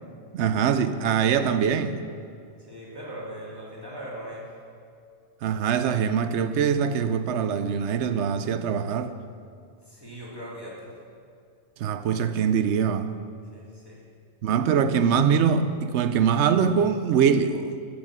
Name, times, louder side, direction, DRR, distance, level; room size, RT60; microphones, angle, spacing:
voice 1, 0.3-2.0 5.4-9.2 11.8-13.2 14.4-17.8, right 7 dB, 80° right, 0.9 m, -23 dB
voice 2, 2.6-4.4 9.9-10.9 13.5-14.0, equal, 20° right, 2.8 m, -39 dB
13.5 x 6.6 x 6.1 m
omnidirectional pair, 1.2 m